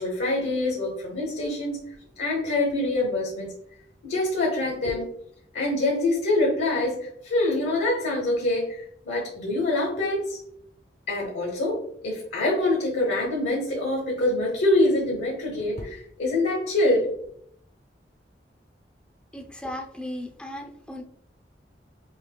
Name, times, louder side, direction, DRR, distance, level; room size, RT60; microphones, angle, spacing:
voice 1, 0.0-1.8 2.2-3.5 4.0-5.1 5.5-10.4 11.1-17.1, left 2 dB, 75° left, -2 dB, 1.0 m, -25 dB
voice 2, 19.3-21.0, left 1 dB, 5° left, 3 dB, 0.5 m, -36 dB
5.2 x 2.9 x 2.2 m, 0.69 s
head